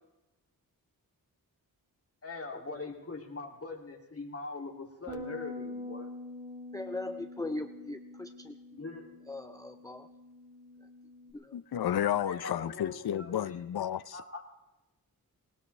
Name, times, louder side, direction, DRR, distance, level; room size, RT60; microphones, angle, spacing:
voice 1, 2.2-6.1 8.7-9.2 12.2-13.6 14.1-14.4, left 3 dB, 40° left, 1 dB, 2.7 m, -42 dB
Bass guitar, 5.1-11.3, left 2 dB, 10° right, 2.7 m, -45 dB
voice 2, 6.7-8.6 9.3-10.1 11.3-11.5, left 2 dB, 10° left, 7 dB, 0.6 m, -39 dB
voice 3, 11.5-14.2, left 10 dB, 80° left, 15 dB, 0.7 m, -32 dB
20.5 x 18.5 x 3.3 m, 1.0 s
wide cardioid pair, 135°, 37 cm